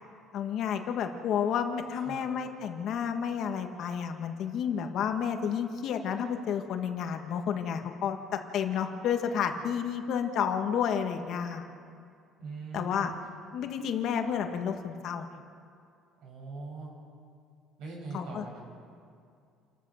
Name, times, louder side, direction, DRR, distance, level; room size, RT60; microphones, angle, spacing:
voice 1, 0.3-8.2 8.5-11.6 12.7-13.1 13.5-15.3 18.1-18.4, left 7 dB, 55° left, 5 dB, 1.7 m, -31 dB
voice 2, 12.4-13.0 16.2-16.9 17.8-18.6, right 3 dB, 70° right, -1 dB, 7.5 m, -41 dB
29.0 x 14.5 x 6.6 m, 2.3 s
cardioid pair, 145°, 0 cm